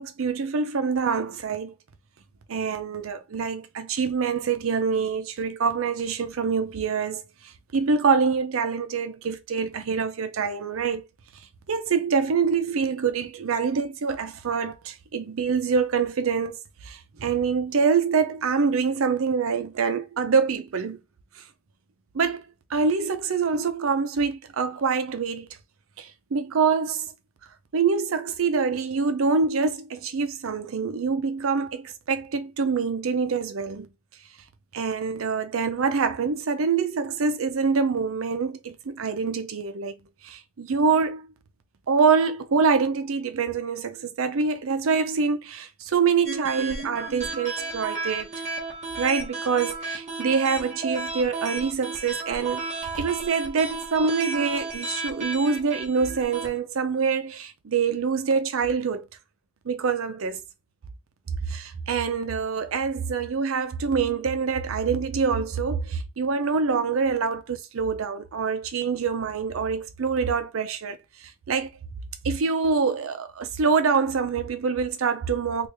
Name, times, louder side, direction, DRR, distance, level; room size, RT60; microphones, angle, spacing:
voice 1, 0.0-1.7 2.5-7.2 7.7-11.1 11.7-21.0 22.1-22.4 22.7-25.5 26.0-27.1 27.7-33.9 34.7-39.9 40.2-41.3 41.9-48.3 49.0-52.7 52.9-59.1 59.7-60.4 61.5-71.0 71.5-71.7 72.2-75.7, right 5 dB, 85° right, 0.5 m, -25 dB
sound 1, 46.3-56.5, right 3 dB, 35° right, 0.9 m, -33 dB
3.0 x 2.4 x 3.4 m
head